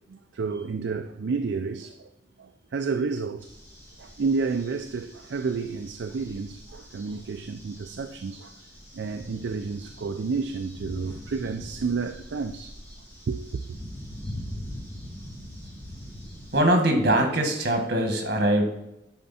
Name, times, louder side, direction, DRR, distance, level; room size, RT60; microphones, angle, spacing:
voice 1, 0.1-2.1 2.4-3.5 4.0-8.5 8.9-12.8 13.3-13.6, right 4 dB, 70° right, 0.4 m, -30 dB
sound 1, 3.4-16.6, equal, 10° left, 2.4 m, -43 dB
voice 2, 16.5-18.7, right 1 dB, 55° right, 1.6 m, -22 dB
10.5 x 4.3 x 4.2 m
head